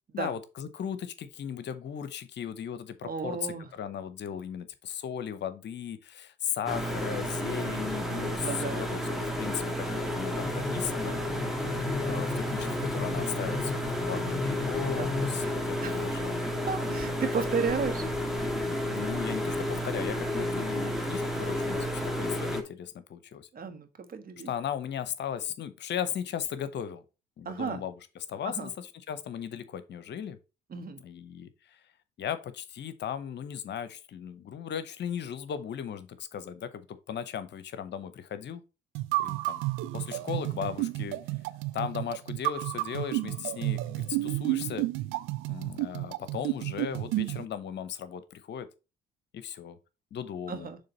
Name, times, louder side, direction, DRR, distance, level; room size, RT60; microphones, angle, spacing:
voice 1, 0.1-11.2 12.0-16.5 18.9-23.5 24.5-27.0 27.4-30.4 31.0-31.8 32.2-38.6 39.2-39.6 39.9-41.2 41.7-44.9 45.5-48.7 49.3-49.8 50.1-50.7, left 8 dB, 55° left, 0.9 m, -37 dB
voice 2, 3.0-3.7 8.4-8.8 15.0-15.1 15.8-16.1 16.7-18.0 23.5-24.5 27.4-27.8 28.4-28.7 30.7-31.0 50.5-50.8, right 5 dB, 45° right, 1.4 m, -33 dB
sound 1, 6.7-22.6, equal, ahead, 1.9 m, -31 dB
sound 2, 10.4-15.4, left 4 dB, 20° right, 3.0 m, -36 dB
sound 3, 38.9-47.4, right 18 dB, 70° right, 0.5 m, -31 dB
6.8 x 3.4 x 5.5 m
hypercardioid pair, 50°, 21 cm